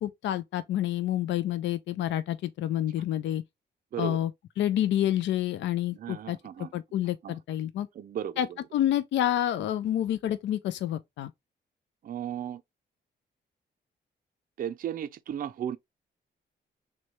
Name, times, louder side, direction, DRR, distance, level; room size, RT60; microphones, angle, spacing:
voice 1, 0.0-3.4 4.0-4.3 4.6-7.9 8.4-8.5 8.7-11.3, left 12 dB, 75° left, 0.4 m, -28 dB
voice 2, 6.0-6.7 7.2-7.4 8.0-8.4 12.0-12.6 14.6-15.8, right 10 dB, 50° right, 0.4 m, -35 dB
6.1 x 2.3 x 3.0 m
cardioid pair, 100°, 19 cm